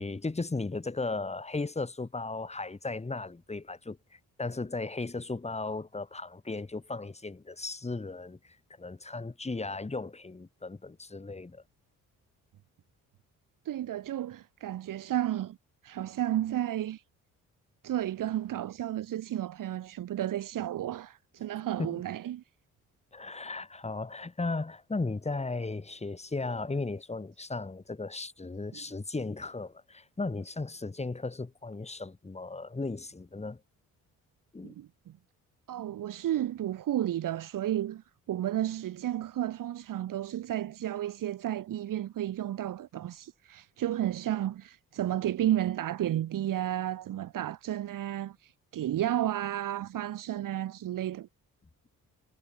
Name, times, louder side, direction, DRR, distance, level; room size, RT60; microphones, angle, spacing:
voice 1, 0.0-11.6 21.8-22.0 23.1-33.6 34.5-34.7, left 3 dB, 20° left, 6.0 m, -36 dB
voice 2, 13.7-15.6 15.8-17.0 17.8-22.4 34.6-34.9 35.7-51.3, right 12 dB, 70° right, 2.3 m, -32 dB
cardioid pair, 105°, 33 cm